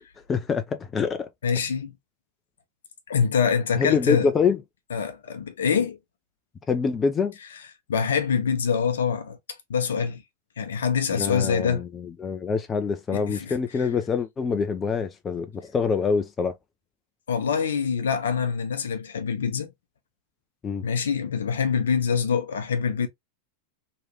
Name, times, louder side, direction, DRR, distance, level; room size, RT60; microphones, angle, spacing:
voice 1, 0.3-1.3 3.8-4.6 6.7-7.3 11.1-16.5 20.6-20.8, left 5 dB, 20° left, 0.5 m, -25 dB
voice 2, 1.4-1.9 3.1-4.3 4.9-6.0 7.9-9.4 9.7-10.2 10.6-11.9 13.1-13.5 17.3-19.7 20.8-23.1, left 6 dB, 65° left, 0.7 m, -25 dB
3.1 x 2.8 x 2.9 m
figure-of-eight pair, 90°, 0 cm